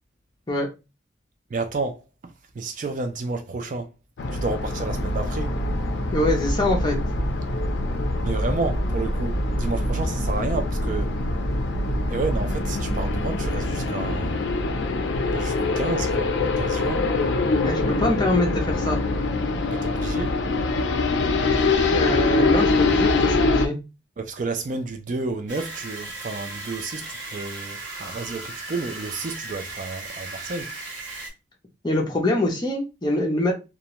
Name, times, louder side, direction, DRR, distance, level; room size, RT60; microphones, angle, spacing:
voice 1, 1.5-3.9 4.3-5.6 8.2-11.3 12.1-14.4 15.3-17.1 19.7-20.4 24.2-30.7, right 3 dB, 45° right, 0.3 m, -31 dB
sound 1, 4.2-23.7, left 3 dB, 75° left, 0.4 m, -24 dB
sound 2, 4.9-13.7, equal, 5° right, 1.1 m, -30 dB
voice 2, 6.1-7.0 17.6-19.0 21.9-23.8 31.8-33.5, left 2 dB, 25° left, 0.6 m, -24 dB
sound 3, 25.5-31.3, right 2 dB, 85° right, 1.2 m, -36 dB
2.4 x 2.1 x 2.8 m
head